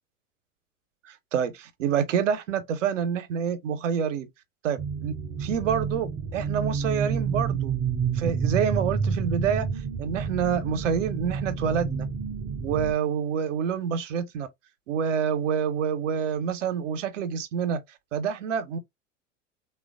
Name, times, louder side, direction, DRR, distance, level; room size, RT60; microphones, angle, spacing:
voice 1, 1.3-4.3 4.6-5.1 5.4-7.7 8.1-9.7 10.0-12.1 12.6-14.5 14.9-17.8 18.1-18.8, right 7 dB, 70° right, 0.7 m, -27 dB
sound 1, 4.8-12.9, right 6 dB, 25° right, 0.5 m, -29 dB
3.0 x 2.2 x 2.4 m
figure-of-eight pair, 85°, 39 cm